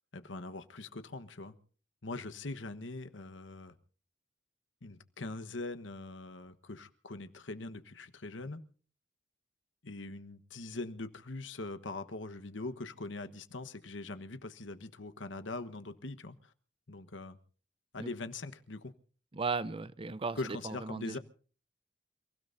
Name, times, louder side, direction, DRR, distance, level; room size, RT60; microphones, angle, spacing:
voice 1, 0.1-1.5 2.0-3.8 4.8-8.6 9.8-16.5 16.9-17.4 17.9-18.9 20.3-21.2, left 2 dB, 90° left, 1.3 m, -42 dB
voice 2, 19.3-21.2, right 4 dB, 30° right, 0.6 m, -36 dB
29.0 x 16.5 x 2.7 m
head